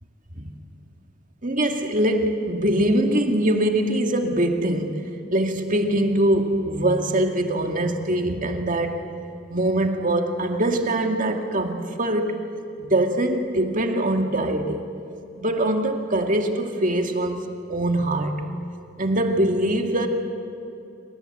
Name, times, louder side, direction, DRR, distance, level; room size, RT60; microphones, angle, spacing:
voice 1, 1.4-9.0 9.5-12.5 12.9-14.9 15.4-18.5 19.0-20.1, right 1 dB, 40° right, 4 dB, 2.2 m, -23 dB
28.5 x 25.0 x 7.9 m, 2.7 s
head